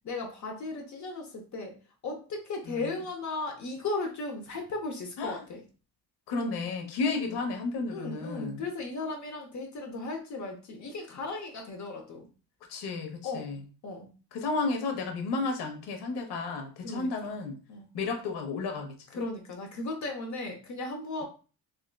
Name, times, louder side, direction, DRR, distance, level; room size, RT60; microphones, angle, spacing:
voice 1, 0.0-1.7 2.0-5.6 7.0-7.3 7.9-12.3 13.2-13.5 13.8-14.1 16.8-17.3 17.7-17.9 19.2-21.2, left 3 dB, 45° left, 2 dB, 0.7 m, -36 dB
voice 2, 6.3-8.6 12.7-13.6 14.3-17.6 17.9-19.2, left 3 dB, 70° left, 3 dB, 1.0 m, -32 dB
3.7 x 2.3 x 2.2 m, 0.36 s
cardioid pair, 90°, 42 cm